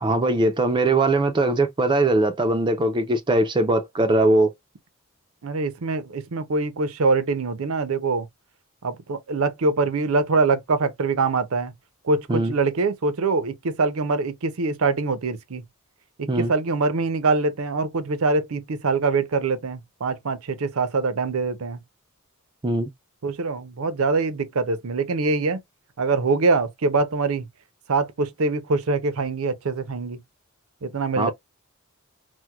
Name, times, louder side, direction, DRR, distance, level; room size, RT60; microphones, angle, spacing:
voice 1, 0.0-4.5 12.3-12.5 16.3-16.5 22.6-22.9 31.2-31.3, right 2 dB, 20° right, 0.4 m, -21 dB
voice 2, 5.4-8.3 8.8-11.7 12.0-15.6 16.2-21.8 23.2-25.6 26.0-27.5 27.9-30.2 30.8-31.3, right 3 dB, 75° right, 0.6 m, -24 dB
4.4 x 2.1 x 2.3 m
head